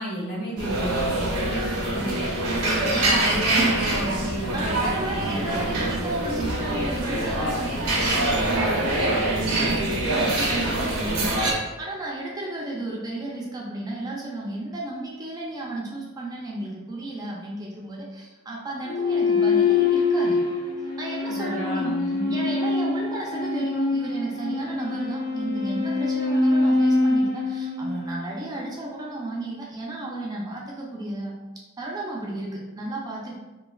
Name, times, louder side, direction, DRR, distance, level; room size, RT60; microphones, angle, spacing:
voice 1, 0.0-2.3 2.7-4.9 5.2-6.1 21.3-22.5, equal, 60° left, -6 dB, 1.1 m, -32 dB
sound 1, 0.6-11.5, right 1 dB, 75° right, 0.6 m, -24 dB
voice 2, 2.7-3.2 4.5-20.4 21.0-21.9 22.3-31.4 31.8-33.3, right 2 dB, 15° right, -3 dB, 0.3 m, -33 dB
sound 2, 18.8-28.5, left 3 dB, 80° left, 0.6 m, -24 dB
3.0 x 2.4 x 2.3 m, 1.2 s
head